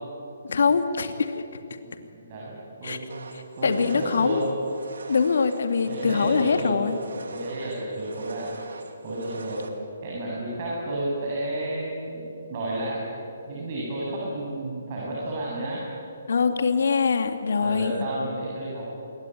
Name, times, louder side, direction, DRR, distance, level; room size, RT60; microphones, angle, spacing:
voice 1, 0.4-1.4 2.8-3.0 3.3-4.4 5.1-6.9 16.3-17.9, left 5 dB, 60° left, 7 dB, 2.4 m, -23 dB
voice 2, 1.8-3.1 3.6-4.5 5.8-6.8 7.1-8.6 9.0-9.6 10.0-13.0 13.5-15.8 17.4-18.8, right 1 dB, 40° right, -5 dB, 7.9 m, -31 dB
sound 1, 3.1-9.7, right 4 dB, 65° right, 2.8 m, -43 dB
27.5 x 21.5 x 9.4 m, 2.7 s
figure-of-eight pair, 135°, 0 cm